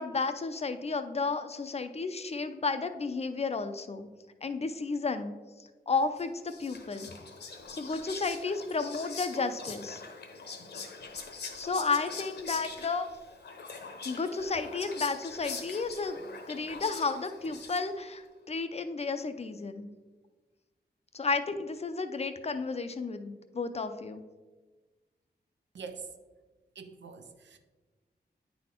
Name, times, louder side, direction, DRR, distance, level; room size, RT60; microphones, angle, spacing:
voice 1, 0.0-4.1 4.4-5.3 5.9-7.1 7.7-10.0 11.6-13.1 14.0-16.2 16.5-19.9 21.1-24.2, left 4 dB, 35° left, 0.5 m, -32 dB
Whispering, 6.2-18.1, left 4 dB, 70° left, 1.0 m, -43 dB
voice 2, 25.7-26.1 26.8-27.6, right 5 dB, 90° right, 0.7 m, -44 dB
9.4 x 4.2 x 4.3 m
wide cardioid pair, 150°, 18 cm